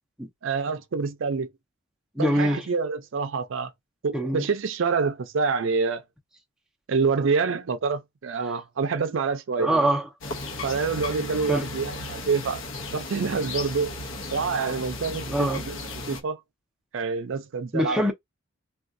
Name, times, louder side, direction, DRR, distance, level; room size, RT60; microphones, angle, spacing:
voice 1, 0.4-1.5 2.2-3.7 4.0-6.0 6.9-9.7 10.6-12.6 12.9-13.9 14.3-15.8 16.1-16.4 16.9-18.0, right 5 dB, 65° right, 0.5 m, -27 dB
voice 2, 2.2-2.7 4.1-4.4 9.6-10.1 11.5-11.7 15.3-15.6 17.7-18.1, equal, 5° right, 0.5 m, -23 dB
sound 1, 10.2-16.2, left 2 dB, 70° left, 0.8 m, -35 dB
3.6 x 2.3 x 2.5 m
head